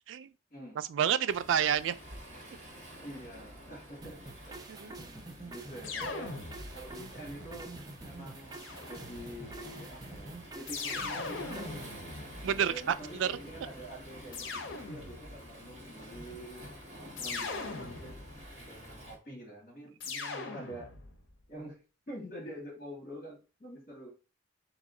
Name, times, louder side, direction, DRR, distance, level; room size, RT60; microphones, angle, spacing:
voice 1, 0.8-2.0 4.7-4.9 12.4-13.4, right 8 dB, 80° right, 0.3 m, -29 dB
Waves surf, 1.3-19.2, equal, 40° right, 1.7 m, -49 dB
voice 2, 3.0-6.4 6.7-7.8 8.0-11.9 12.6-16.7 16.9-18.2 18.6-20.9 21.5-21.8 22.1-24.1, equal, 50° left, 2.2 m, -46 dB
sound 1, 4.0-12.0, right 2 dB, 20° right, 0.5 m, -47 dB
sound 2, 5.8-7.0 8.6-9.4 10.7-13.0 14.3-15.4 17.2-18.5 20.0-21.2, left 4 dB, 85° left, 0.7 m, -40 dB
3.5 x 3.0 x 3.7 m
head